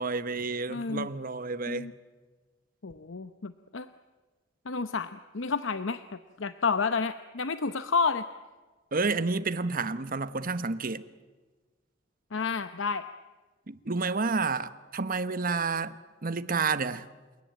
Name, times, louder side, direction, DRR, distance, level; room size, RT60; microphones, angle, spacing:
voice 1, 0.0-1.9 8.9-11.0 13.7-15.9 16.2-17.1, right 4 dB, 50° right, 1.1 m, -30 dB
voice 2, 0.7-1.1 1.7-1.9 2.8-3.9 4.7-8.2 12.3-13.0, left 4 dB, 70° left, 0.8 m, -30 dB
29.5 x 18.0 x 9.3 m
head